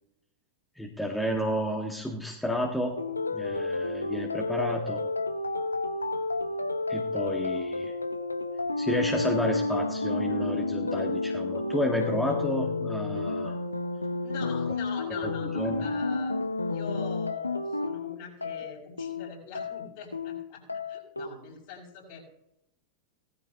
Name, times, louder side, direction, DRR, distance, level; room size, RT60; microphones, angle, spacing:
voice 1, 0.8-3.0 3.3-5.0 6.9-7.9 8.8-13.6 15.2-15.9, equal, 5° left, 1 dB, 1.6 m, -31 dB
sound 1, 3.0-21.3, left 3 dB, 80° left, 0.8 m, -31 dB
voice 2, 14.2-16.3 16.7-20.6 20.9-22.2, left 6 dB, 50° left, -1 dB, 6.1 m, -43 dB
18.5 x 13.5 x 2.9 m, 0.82 s
figure-of-eight pair, 90°, 0 cm